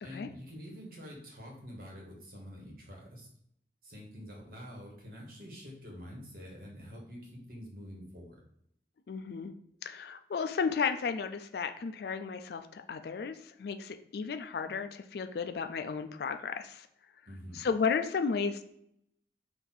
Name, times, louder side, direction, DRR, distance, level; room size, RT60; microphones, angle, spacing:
voice 1, 0.0-3.3 3.8-8.3 17.2-17.7, equal, 55° right, -2 dB, 1.4 m, -47 dB
voice 2, 9.1-9.5 9.8-16.9 17.5-18.6, left 5 dB, 60° left, 8 dB, 0.4 m, -33 dB
4.4 x 2.6 x 4.0 m, 0.73 s
head